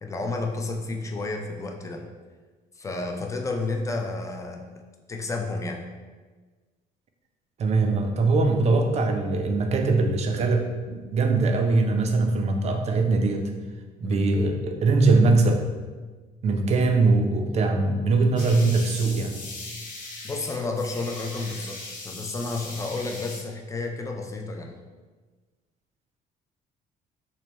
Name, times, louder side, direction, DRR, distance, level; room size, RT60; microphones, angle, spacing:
voice 1, 0.0-2.1 2.8-4.8 5.1-5.9 14.0-14.2 20.2-24.8, left 3 dB, 20° left, 3 dB, 0.4 m, -31 dB
voice 2, 7.6-13.5 14.0-15.6 16.4-19.3, right 3 dB, 40° right, 4 dB, 0.5 m, -22 dB
sound 1, 18.4-23.4, left 2 dB, 50° left, 0.9 m, -39 dB
3.2 x 2.1 x 4.1 m, 1.3 s
cardioid pair, 110°, 17 cm